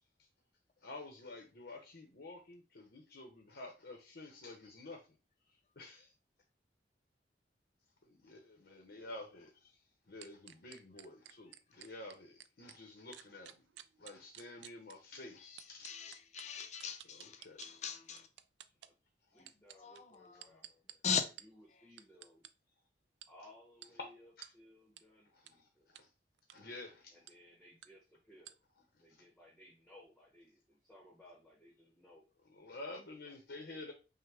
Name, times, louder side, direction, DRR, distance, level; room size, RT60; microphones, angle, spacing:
voice 1, 0.8-5.0 5.8-6.1 8.1-9.8 10.1-13.6 14.0-15.9 17.1-17.6 24.4-24.5 25.3-26.1 26.5-27.2 32.5-33.9, left 2 dB, 70° left, 0.9 m, -50 dB
sound 1, 10.2-12.8 13.1-14.9 15.6-17.7 18.2-18.9 19.4-21.4 22.0-22.5 23.2-23.3 23.8-23.9 24.4-24.5 25.0-25.1 25.5-25.6 25.9-26.0 26.4-26.6 27.3-27.4 27.8-27.9 28.4-28.5, right 12 dB, 85° right, 0.3 m, -52 dB
voice 2, 15.4-18.3 19.4-19.5 19.8-20.5 21.0-21.2, left 7 dB, 40° left, 0.5 m, -40 dB
voice 3, 19.3-21.0 21.4-22.5 23.3-25.9 27.1-28.6 29.0-32.3 33.0-33.9, left 1 dB, ahead, 0.9 m, -61 dB
5.7 x 2.2 x 3.4 m
head